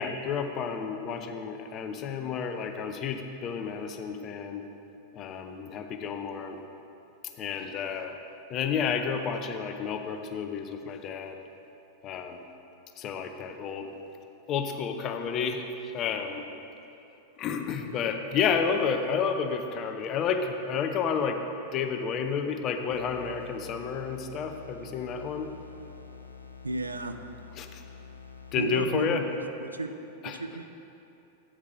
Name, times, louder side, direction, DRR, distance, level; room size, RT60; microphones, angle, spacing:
voice 1, 0.0-4.6 5.1-6.6 7.4-8.1 8.5-11.4 12.0-12.4 13.0-13.9 14.5-15.6 15.9-16.4 17.4-21.4 21.7-25.5 27.6-27.8 28.5-29.2 30.2-30.4, left 6 dB, 35° left, 6 dB, 0.6 m, -31 dB
sound 1, 22.9-28.9, left 5 dB, 90° left, 0.5 m, -47 dB
voice 2, 26.6-27.2 28.6-29.2 29.6-29.9 30.2-30.6, right 2 dB, 80° right, 8 dB, 0.4 m, -33 dB
8.8 x 4.7 x 5.6 m, 2.9 s
figure-of-eight pair, 90°, 0 cm